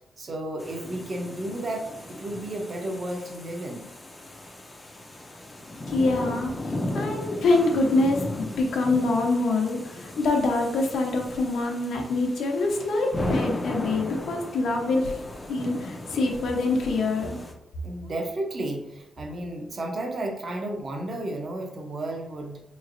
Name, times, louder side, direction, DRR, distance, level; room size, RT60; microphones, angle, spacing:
voice 1, 0.2-3.9 17.8-22.6, right 1 dB, 35° right, 3 dB, 0.6 m, -33 dB
sound 1, 0.6-17.5, left 1 dB, 15° left, 0.4 m, -36 dB
voice 2, 5.9-6.5 6.9-8.2 8.6-15.2 15.5-17.4, left 2 dB, 80° left, 2 dB, 0.8 m, -25 dB
5.0 x 3.1 x 2.5 m, 0.84 s
wide cardioid pair, 175°, 0 cm